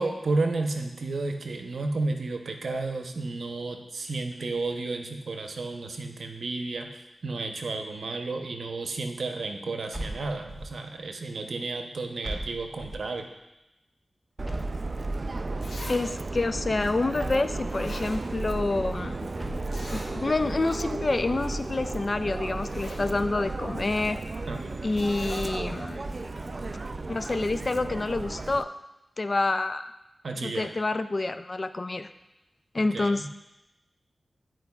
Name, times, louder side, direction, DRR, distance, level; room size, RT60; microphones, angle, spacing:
voice 1, 0.0-13.2 24.5-24.8 30.2-30.7 32.8-33.3, right 3 dB, 80° right, 4 dB, 0.7 m, -32 dB
sound 1, 9.9-10.9 12.2-13.2 14.5-15.4 17.2-18.1 19.4-20.2, right 1 dB, ahead, 1.2 m, -38 dB
Subway metro underground, 14.4-28.6, right 3 dB, 55° right, 0.3 m, -34 dB
Zipper (clothing), 15.6-16.0 16.4-16.5 17.3-17.4 17.7-18.6 18.9-19.0 19.7-20.1 20.6-20.7 21.0-21.2 22.1-22.2 22.5-23.0 25.0-25.5 26.4-26.5, left 1 dB, 70° left, 1.6 m, -43 dB
voice 2, 15.9-19.2 19.9-24.2 24.8-26.0 27.1-28.7 29.2-29.9 30.4-32.1 32.7-33.3, left 2 dB, 50° left, 10 dB, 0.4 m, -28 dB
11.5 x 4.5 x 2.3 m, 0.95 s
cardioid pair, 45°, 0 cm